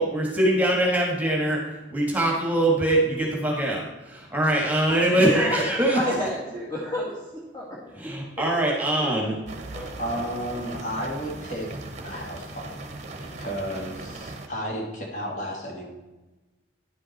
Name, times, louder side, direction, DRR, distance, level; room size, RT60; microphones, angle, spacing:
voice 1, 0.0-6.0 7.9-9.4, right 1 dB, 10° right, -2 dB, 1.7 m, -23 dB
voice 2, 5.0-7.1 7.5-7.9 9.7-9.9, left 1 dB, 20° left, -6 dB, 1.6 m, -30 dB
sound 1, 9.5-14.5, right 2 dB, 35° right, 0.9 m, -38 dB
voice 3, 10.0-12.8 13.2-15.9, equal, 40° left, -1 dB, 2.0 m, -33 dB
10.5 x 7.5 x 4.2 m, 1.1 s
head